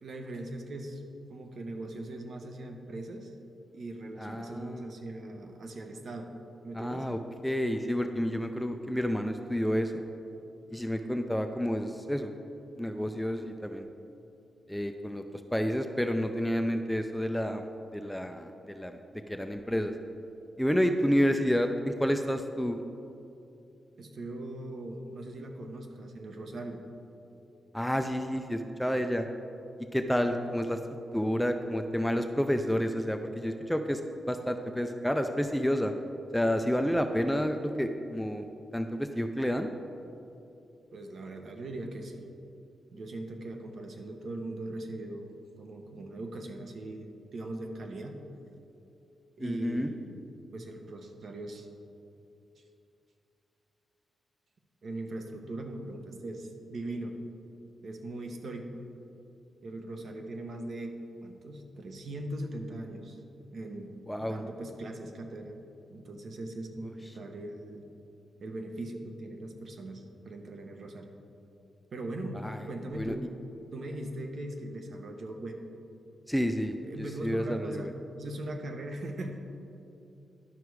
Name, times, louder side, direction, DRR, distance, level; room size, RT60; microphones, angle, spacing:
voice 1, 0.0-1.0 1.3-3.3 3.7-6.3 6.6-7.1 24.0-26.8 40.9-42.2 42.9-45.3 45.6-48.2 49.4-50.2 50.5-51.7 54.8-57.1 57.8-58.8 59.6-63.2 63.5-63.9 64.2-65.5 65.9-67.9 68.4-71.1 71.9-72.4 72.7-73.3 73.7-75.6 76.8-79.4, right 1 dB, 55° right, 4 dB, 0.9 m, -40 dB
voice 2, 4.2-4.9 6.8-9.9 10.7-12.3 12.8-13.9 14.7-15.2 15.5-17.7 17.9-19.0 19.3-19.9 20.6-22.8 27.7-29.3 29.9-30.8 31.1-34.0 34.3-35.9 36.3-38.4 38.7-39.7 49.4-49.9 64.1-64.4 72.3-72.6 72.9-73.2 76.3-77.9, equal, 5° left, 6 dB, 0.4 m, -29 dB
11.0 x 5.9 x 4.7 m, 2.7 s
wide cardioid pair, 140°, 0 cm